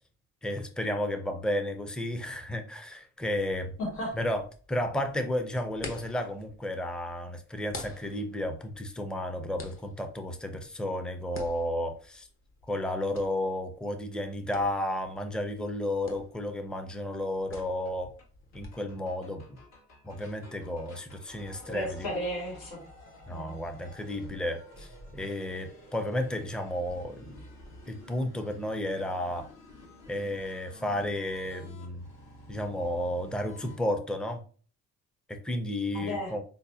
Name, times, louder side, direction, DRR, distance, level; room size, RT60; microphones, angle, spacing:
voice 1, 0.4-3.7 4.2-4.4 4.7-12.3 12.7-18.1 18.5-19.6 20.0-22.1 23.3-27.5 27.9-29.5 30.1-32.0 32.5-34.4 35.3-36.4, left 1 dB, 5° left, 6 dB, 0.5 m, -32 dB
sound 1, 3.2-18.7, left 2 dB, 45° left, 1.1 m, -49 dB
voice 2, 3.8-4.2 21.7-22.8 23.3-23.5 35.9-36.3, equal, 90° left, -1 dB, 1.5 m, -34 dB
sound 2, 17.5-17.6 17.9-18.0 18.2-18.3 18.5-33.8, left 1 dB, 60° left, 1.4 m, -51 dB
5.2 x 2.1 x 2.7 m, 0.41 s
cardioid pair, 90°, 30 cm